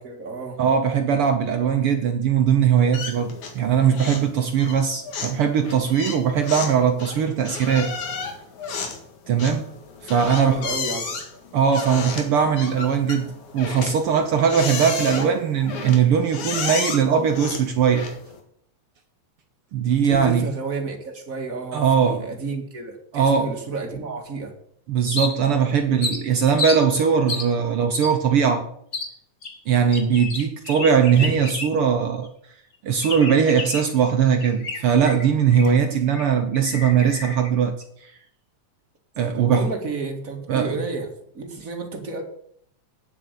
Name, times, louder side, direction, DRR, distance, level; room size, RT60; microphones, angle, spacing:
voice 1, 0.0-0.6 10.3-11.4 20.0-24.5 39.3-41.1 41.3-42.2, right 4 dB, 30° right, 2 dB, 2.2 m, -31 dB
voice 2, 0.6-7.9 9.3-9.7 10.0-10.6 11.5-18.1 19.7-20.5 21.7-22.2 23.1-23.5 24.9-28.7 29.7-32.3 32.8-37.7 38.0-38.1 39.2-39.7 40.5-40.7, right 7 dB, 65° right, 6 dB, 1.5 m, -20 dB
sound 1, 2.9-3.7 3.9-4.3 4.6-18.4, left 5 dB, 75° left, 3.3 m, -32 dB
sound 2, 25.1-25.6 26.0-26.8 27.3-27.5 27.9-28.1 28.9-29.1 29.4-31.9 32.2-32.3 33.0-33.9 34.4-35.8 36.1-36.3 36.5-37.5, left 3 dB, 30° left, 1.4 m, -31 dB
9.6 x 7.6 x 8.3 m, 0.68 s
omnidirectional pair, 3.4 m